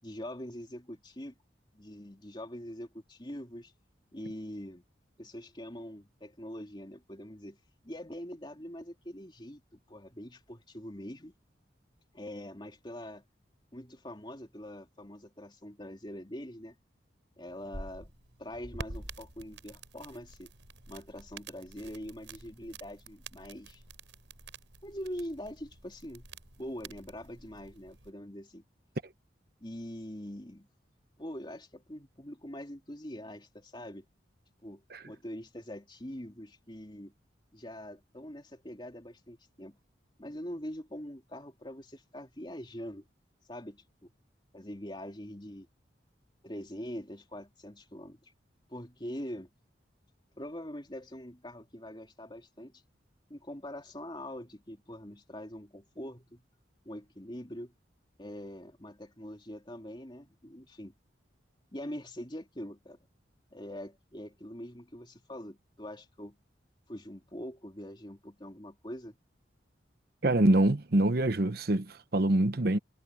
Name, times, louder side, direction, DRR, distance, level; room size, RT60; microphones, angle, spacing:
voice 1, 0.0-1.3 1.7-3.7 4.1-4.8 5.2-7.6 7.8-11.3 12.1-13.2 13.7-16.7 17.4-18.1 18.4-20.5 20.9-23.8 24.8-26.3 26.6-28.6 29.6-30.7 31.2-34.1 34.6-37.1 37.5-39.8 40.2-43.0 43.5-44.1 44.5-45.7 46.4-48.3 48.7-49.5 50.4-52.8 53.3-56.4 56.8-57.7 58.2-60.9 61.7-63.0 63.5-66.4 66.9-69.2, equal, 25° left, 3.2 m, -43 dB
sound 1, 17.5-28.1, right 2 dB, 80° right, 6.5 m, -48 dB
voice 2, 70.2-72.8, right 1 dB, 55° right, 1.0 m, -25 dB
head